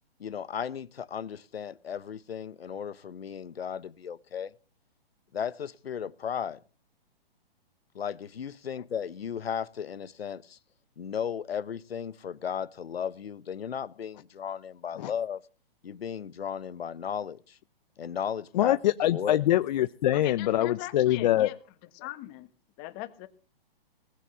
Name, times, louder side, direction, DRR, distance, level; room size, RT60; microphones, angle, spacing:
voice 1, 0.2-4.5 5.3-6.6 7.9-10.6 11.0-15.4 15.8-17.6 18.0-18.8 19.1-19.4, left 8 dB, 90° left, 1.0 m, -35 dB
voice 2, 18.5-21.5, left 13 dB, 50° left, 0.7 m, -24 dB
voice 3, 20.1-21.6 21.9-22.5 22.8-23.3, left 16 dB, 30° left, 1.5 m, -40 dB
19.5 x 8.6 x 6.9 m
hypercardioid pair, 140°, 29 cm